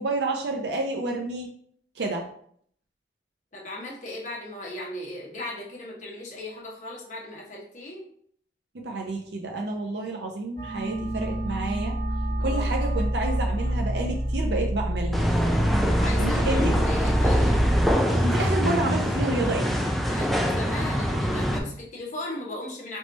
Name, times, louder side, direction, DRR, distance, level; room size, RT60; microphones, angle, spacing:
voice 1, 0.0-1.5 2.0-2.3 8.8-11.9 12.4-15.3 16.2-16.7 18.2-19.7, right 2 dB, 70° right, 1 dB, 0.6 m, -29 dB
voice 2, 3.5-8.0 12.4-12.7 15.7-17.6 20.1-23.0, left 1 dB, 45° left, -3 dB, 1.2 m, -37 dB
sound chamber pt I, 10.6-17.9, equal, 20° left, 1.6 m, -27 dB
sound 1, 15.1-21.6, equal, ahead, 0.4 m, -24 dB
3.5 x 3.1 x 4.0 m, 0.63 s
head